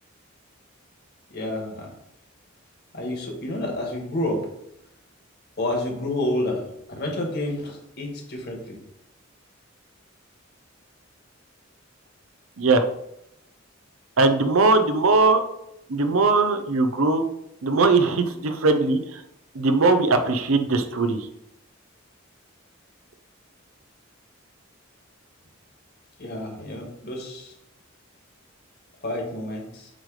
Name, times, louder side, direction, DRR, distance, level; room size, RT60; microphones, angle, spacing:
voice 1, 1.3-1.9 2.9-4.4 5.6-8.8 26.2-27.5 29.0-29.9, left 1 dB, 50° left, 0 dB, 1.7 m, -29 dB
voice 2, 14.2-15.4 15.9-17.2 17.6-19.2 19.5-21.3, right 3 dB, 85° right, 8 dB, 0.7 m, -20 dB
7.7 x 3.3 x 4.8 m, 0.80 s
head